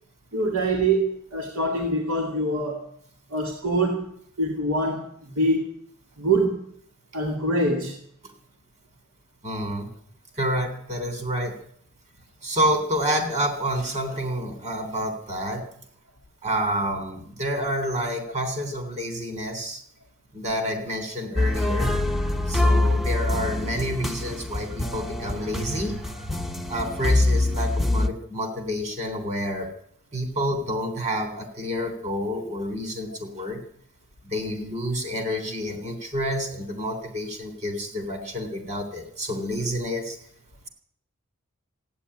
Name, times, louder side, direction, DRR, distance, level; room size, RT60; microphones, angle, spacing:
voice 1, 0.3-2.9 3.3-4.1 4.4-5.7 6.2-6.7 7.1-8.0, right 2 dB, 80° right, 1 dB, 2.2 m, -24 dB
voice 2, 9.4-9.9 10.3-11.6 12.4-15.6 16.4-19.8 20.3-21.9 22.5-26.3 26.7-29.7 30.1-33.6 34.2-40.2, equal, 35° right, 6 dB, 3.4 m, -28 dB
sound 1, 21.4-28.1, left 2 dB, ahead, 0.8 m, -24 dB
15.5 x 9.1 x 9.8 m, 0.65 s
head